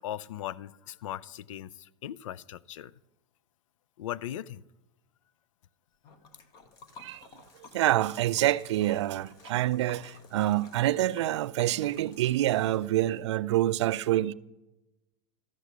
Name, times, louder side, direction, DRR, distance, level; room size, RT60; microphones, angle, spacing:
voice 1, 0.0-2.9 4.0-4.6, left 12 dB, 80° left, 0.5 m, -38 dB
Liquid, 6.0-13.2, left 4 dB, 25° left, 0.8 m, -53 dB
voice 2, 7.7-14.3, right 14 dB, 65° right, 0.4 m, -27 dB
13.0 x 6.0 x 8.3 m
supercardioid pair, 180°, 16 cm